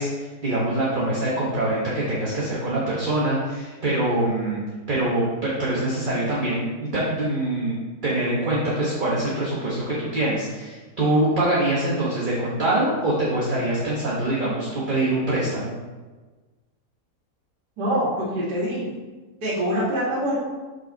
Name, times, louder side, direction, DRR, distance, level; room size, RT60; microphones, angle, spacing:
voice 1, 0.0-4.6 4.9-7.8 8.0-15.7, right 1 dB, 35° right, -7 dB, 1.3 m, -24 dB
voice 2, 17.8-18.9 19.4-20.4, equal, 85° right, -7 dB, 2.3 m, -24 dB
6.1 x 5.7 x 3.9 m, 1.3 s
omnidirectional pair, 1.7 m